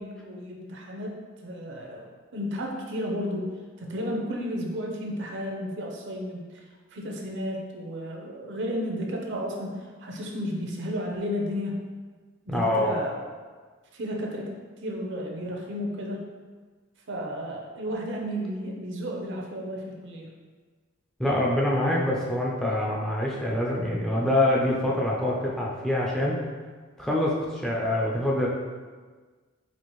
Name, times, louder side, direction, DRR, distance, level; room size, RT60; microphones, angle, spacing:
voice 1, 0.0-2.1 2.3-3.5 3.8-6.6 6.9-11.8 12.5-13.3 13.9-14.5 14.8-16.3 17.1-20.3, equal, 60° right, 0 dB, 0.6 m, -33 dB
voice 2, 12.5-13.0 21.2-26.3 27.0-28.5, left 1 dB, ahead, -4 dB, 0.4 m, -25 dB
4.3 x 2.5 x 3.0 m, 1.4 s
head